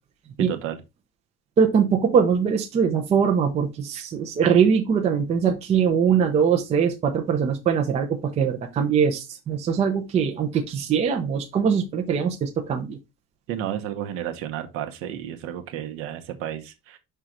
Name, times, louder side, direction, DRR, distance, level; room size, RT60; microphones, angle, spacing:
voice 1, 0.4-0.8 13.5-17.0, right 10 dB, 45° right, 0.9 m, -32 dB
voice 2, 1.6-13.0, right 7 dB, 20° right, 0.6 m, -22 dB
5.6 x 3.8 x 4.6 m
cardioid pair, 180°, 30 cm